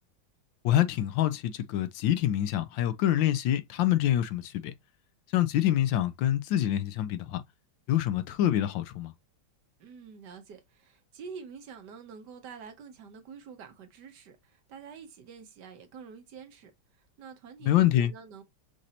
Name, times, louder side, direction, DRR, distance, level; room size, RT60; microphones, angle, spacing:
voice 1, 0.6-4.7 5.3-7.4 7.9-9.1 17.7-18.1, left 12 dB, 70° left, 1.2 m, -26 dB
voice 2, 9.8-18.4, right 6 dB, 60° right, 1.4 m, -47 dB
6.3 x 2.7 x 2.7 m
omnidirectional pair, 2.3 m